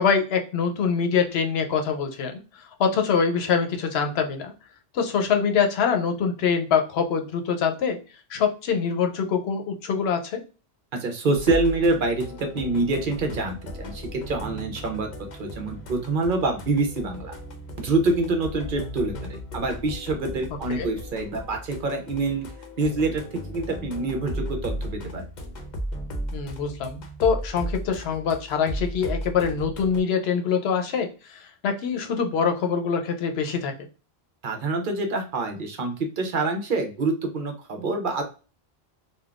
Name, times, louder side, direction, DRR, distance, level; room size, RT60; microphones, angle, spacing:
voice 1, 0.0-4.5 4.9-8.0 8.3-10.4 20.7-20.9 26.3-33.9, left 6 dB, 80° left, 5 dB, 0.8 m, -24 dB
voice 2, 10.9-15.1 15.4-17.4 17.8-22.5 22.8-25.3 34.4-38.2, right 3 dB, 60° right, 4 dB, 0.8 m, -26 dB
sound 1, 11.3-30.0, equal, 50° left, 0.7 m, -36 dB
3.5 x 2.2 x 2.4 m, 0.34 s
omnidirectional pair, 1.1 m